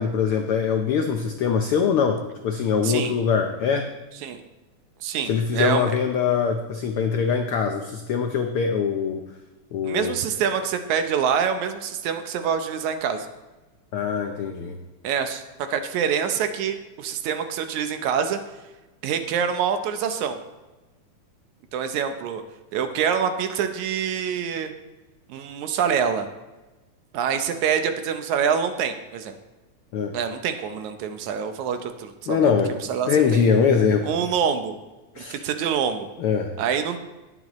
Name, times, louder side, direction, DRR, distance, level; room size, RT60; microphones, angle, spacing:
voice 1, 0.0-3.9 5.3-9.2 9.7-10.1 13.9-14.8 29.9-30.1 32.3-32.7 33.1-34.1 35.2-35.4 36.2-36.5, left 6 dB, 90° left, 4 dB, 1.2 m, -22 dB
voice 2, 5.0-5.9 9.8-13.3 15.0-15.4 15.7-18.4 19.0-20.4 21.7-22.4 22.7-24.7 25.3-26.3 27.1-29.4 30.1-32.5 32.9-33.4 34.0-34.8 35.2-36.1 36.6-37.0, right 7 dB, 75° right, 8 dB, 2.1 m, -25 dB
18.5 x 7.8 x 3.1 m, 1.1 s
omnidirectional pair, 3.5 m